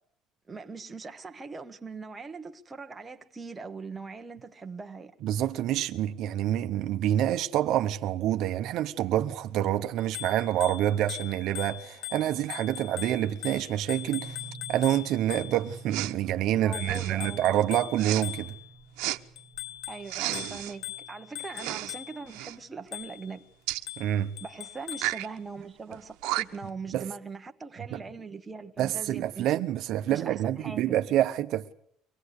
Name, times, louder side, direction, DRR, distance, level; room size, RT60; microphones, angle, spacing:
voice 1, 0.5-5.1 16.5-17.5 19.9-23.4 24.4-29.5 30.1-31.0, right 4 dB, 15° right, 1.2 m, -41 dB
voice 2, 5.2-14.4 14.7-18.5 24.0-24.3 26.9-27.1 27.9-28.0 28.8-31.7, right 12 dB, 60° right, 0.9 m, -27 dB
Bicycle bell, 10.0-15.8 16.7-18.8 19.4-22.3 22.9-23.3 23.9-25.2, left 14 dB, 75° left, 1.5 m, -41 dB
sound 1, 13.9-22.7, right 4 dB, 35° left, 3.5 m, -49 dB
Respiratory sounds, 15.9-16.2 16.8-17.2 18.0-18.2 19.0-19.2 20.1-20.7 21.5-21.9 22.3-22.6 23.7-23.9 24.9-25.3 25.9-26.0 26.2-26.7, right 20 dB, 90° right, 0.9 m, -32 dB
24.5 x 18.5 x 8.2 m
cardioid pair, 150°, 0 cm